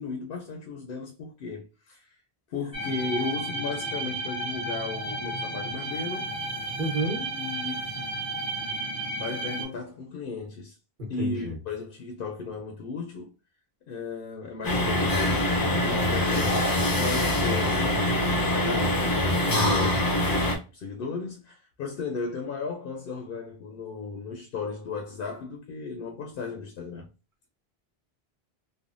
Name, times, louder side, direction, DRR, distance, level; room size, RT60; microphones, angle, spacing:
voice 1, 0.0-2.2 2.5-6.3 7.2-7.9 9.2-10.8 11.1-13.3 13.9-16.7 17.0-19.0 19.6-27.1, left 4 dB, 65° left, 0.7 m, -35 dB
sound 1, 2.7-9.6, right 2 dB, 5° right, 0.8 m, -33 dB
voice 2, 6.8-7.3 11.0-11.5 19.5-20.0, equal, 50° right, 1.1 m, -29 dB
sound 2, 14.6-20.6, left 1 dB, 30° left, 0.4 m, -24 dB
3.3 x 2.0 x 2.5 m
omnidirectional pair, 1.1 m